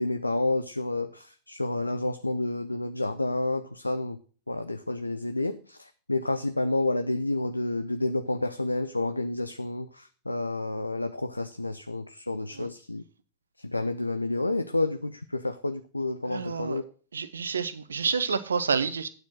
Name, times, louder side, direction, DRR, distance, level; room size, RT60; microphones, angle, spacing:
voice 1, 0.0-4.2 4.5-13.0 13.6-16.8, left 2 dB, 85° left, 0.5 m, -30 dB
voice 2, 16.2-16.8 17.1-19.1, right 5 dB, 70° right, 0.8 m, -29 dB
9.3 x 4.4 x 7.4 m
figure-of-eight pair, 90°, 0 cm